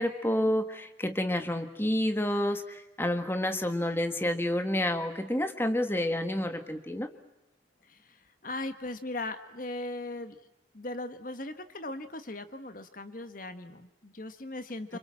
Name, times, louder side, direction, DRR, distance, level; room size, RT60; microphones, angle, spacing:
voice 1, 0.0-7.1 14.9-15.0, left 1 dB, 10° left, 7 dB, 1.6 m, -29 dB
voice 2, 7.8-10.4 10.7-15.0, left 2 dB, 45° left, 9 dB, 1.4 m, -39 dB
28.5 x 26.0 x 7.5 m, 0.93 s
head